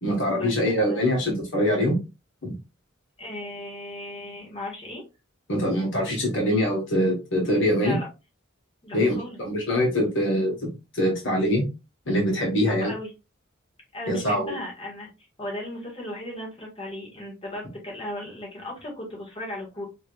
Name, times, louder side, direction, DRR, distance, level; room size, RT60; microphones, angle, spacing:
voice 1, 0.0-2.0 2.4-2.5 5.5-8.0 8.9-11.7 12.1-12.9 14.1-14.5, equal, 65° left, 0 dB, 1.4 m, -24 dB
voice 2, 3.2-5.0 7.8-8.1 8.8-9.4 12.7-13.1 13.9-15.1 15.4-19.8, left 1 dB, 30° left, -3 dB, 1.7 m, -36 dB
4.8 x 3.0 x 2.4 m, 0.28 s
head